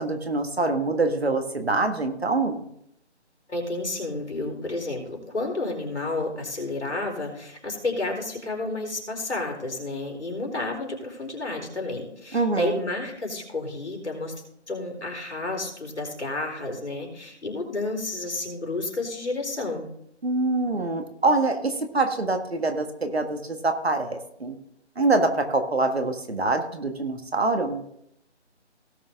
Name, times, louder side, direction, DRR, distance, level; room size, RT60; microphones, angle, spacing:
voice 1, 0.0-2.7 12.3-12.8 20.2-24.6 25.0-27.8, right 3 dB, 60° right, 6 dB, 1.7 m, -25 dB
voice 2, 3.5-14.3 14.7-19.9, left 2 dB, 70° left, 1 dB, 4.1 m, -31 dB
18.0 x 6.2 x 3.5 m, 0.74 s
figure-of-eight pair, 175°, 35 cm